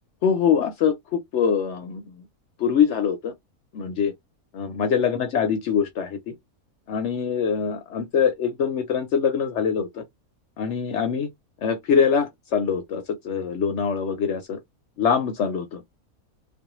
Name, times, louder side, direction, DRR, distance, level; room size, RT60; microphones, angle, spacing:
voice 1, 0.2-2.2 2.6-3.3 3.7-4.1 4.5-6.3 6.9-10.0 10.6-11.3 11.6-14.6 15.0-15.8, left 7 dB, 65° left, 0.8 m, -23 dB
2.5 x 2.0 x 2.9 m
omnidirectional pair, 1.6 m